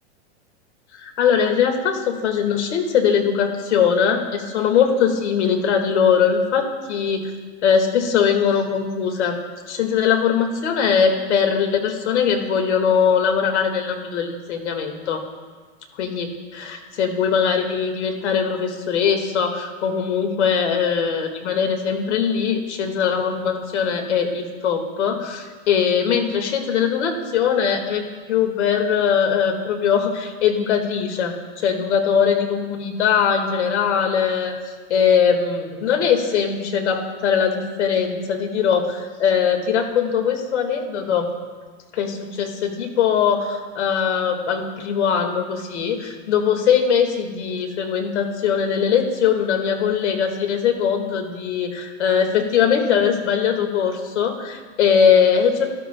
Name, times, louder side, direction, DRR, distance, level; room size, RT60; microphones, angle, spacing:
voice 1, 0.9-7.3 7.6-9.4 9.7-15.2 16.0-28.0 28.3-34.5 34.9-41.3 41.9-55.7, left 7 dB, 75° left, 5 dB, 2.0 m, -21 dB
19.5 x 12.0 x 2.3 m, 1.4 s
supercardioid pair, 170°, 34 cm